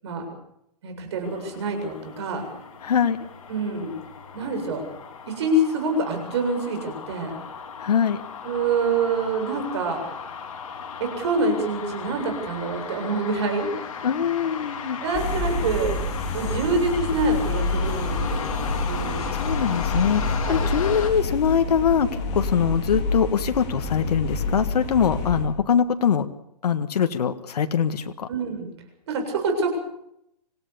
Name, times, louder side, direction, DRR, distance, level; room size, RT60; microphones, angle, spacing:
voice 1, 0.8-2.4 3.5-3.9 4.3-4.8 5.3-7.3 8.4-10.0 11.0-13.7 15.0-16.0 16.3-19.4 20.4-20.6 28.3-28.7 29.1-29.8, right 2 dB, 40° right, 4 dB, 7.7 m, -26 dB
sound 1, 1.2-21.1, left 6 dB, 50° left, 4.3 m, -36 dB
voice 2, 2.8-3.2 7.8-8.2 14.0-15.0 19.1-22.1 22.3-26.3 26.6-28.3, left 7 dB, 65° left, 7 dB, 1.7 m, -23 dB
sound 2, 15.1-25.4, left 2 dB, 20° left, 3.6 m, -28 dB
27.0 x 16.5 x 7.0 m, 0.77 s
hypercardioid pair, 175°, 21 cm